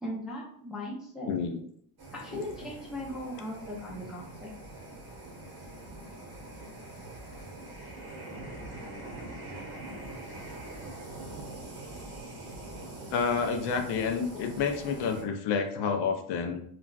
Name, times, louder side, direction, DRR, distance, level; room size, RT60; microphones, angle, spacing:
voice 1, 0.0-1.3 2.1-4.5, left 1 dB, ahead, -4 dB, 0.4 m, -38 dB
voice 2, 1.3-1.6 2.3-2.4 13.1-16.6, left 5 dB, 55° left, 5 dB, 0.5 m, -29 dB
sound 1, 2.0-15.2, right 2 dB, 50° right, 1.1 m, -43 dB
3.3 x 2.4 x 2.2 m, 0.66 s
cardioid pair, 130°, 49 cm